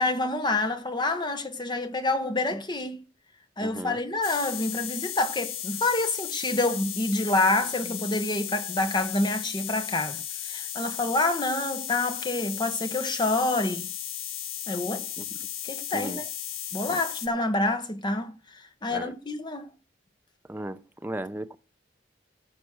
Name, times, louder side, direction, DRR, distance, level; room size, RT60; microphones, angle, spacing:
voice 1, 0.0-3.0 3.6-13.9 14.7-15.1 15.6-16.3 16.7-18.3 18.8-19.7, left 2 dB, 20° left, 1.1 m, -27 dB
voice 2, 3.6-4.0 15.2-15.4 15.9-16.2 16.9-17.0 18.9-19.1 20.5-21.6, right 1 dB, 10° right, 0.5 m, -36 dB
sound 1, 4.2-17.3, left 10 dB, 85° left, 1.0 m, -35 dB
15.0 x 5.1 x 6.2 m
head